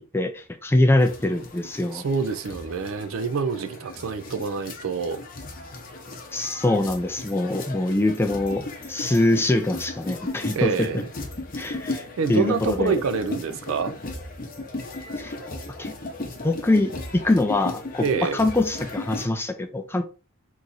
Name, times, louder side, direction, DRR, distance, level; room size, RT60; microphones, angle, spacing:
voice 1, 0.0-2.0 6.3-10.9 11.6-13.0 15.2-15.4 15.8-15.9 16.4-18.0 18.3-20.0, left 2 dB, 10° left, 0.4 m, -23 dB
sound 1, 1.0-19.3, left 2 dB, 45° left, 0.8 m, -36 dB
voice 2, 1.9-5.2 10.5-11.1 12.2-13.9 18.0-18.4, right 5 dB, 70° right, 0.4 m, -26 dB
3.0 x 2.5 x 3.9 m
head